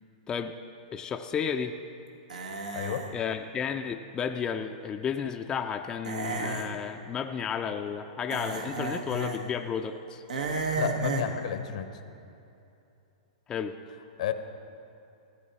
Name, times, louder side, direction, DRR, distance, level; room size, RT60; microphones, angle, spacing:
voice 1, 0.9-1.7 3.1-10.2 13.5-13.8, left 7 dB, 20° left, 5 dB, 0.4 m, -32 dB
sound 1, 2.3-3.1 6.0-6.7 8.3-9.4 10.3-11.3, right 3 dB, 90° right, 1.3 m, -32 dB
voice 2, 2.7-3.0 10.8-11.9 14.2-14.3, left 10 dB, 65° left, 9 dB, 0.8 m, -31 dB
15.5 x 9.4 x 4.2 m, 2.7 s
hypercardioid pair, 135°, 4 cm